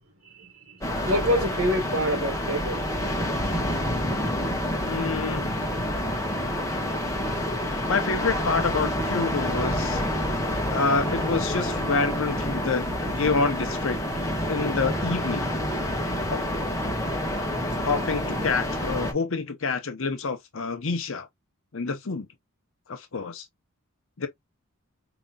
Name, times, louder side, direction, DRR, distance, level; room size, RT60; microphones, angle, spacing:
voice 1, 0.2-2.8, equal, 55° right, 1.3 m, -27 dB
sound 1, 0.8-19.1, left 1 dB, 15° left, 1.2 m, -28 dB
voice 2, 4.8-5.5 7.9-10.0 10.7-14.0 14.5-15.5 16.3-16.4 17.8-21.3 21.7-22.3 22.9-23.5 24.2-24.3, left 4 dB, 60° left, 0.8 m, -27 dB
5.2 x 2.9 x 2.4 m
head